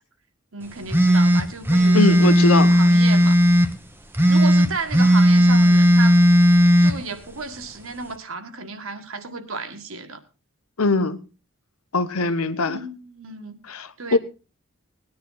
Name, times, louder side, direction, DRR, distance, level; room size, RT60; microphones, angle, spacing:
voice 1, 0.5-3.4 4.3-6.2 6.8-10.2 12.7-13.6 14.0-14.2, right 3 dB, 70° right, 1.8 m, -33 dB
sound 1, 0.9-3.7 4.1-6.9, equal, 10° right, 0.9 m, -15 dB
voice 2, 1.9-2.8 10.8-11.2 11.9-12.9 13.7-14.2, left 3 dB, 80° left, 1.1 m, -21 dB
19.0 x 10.5 x 4.0 m
head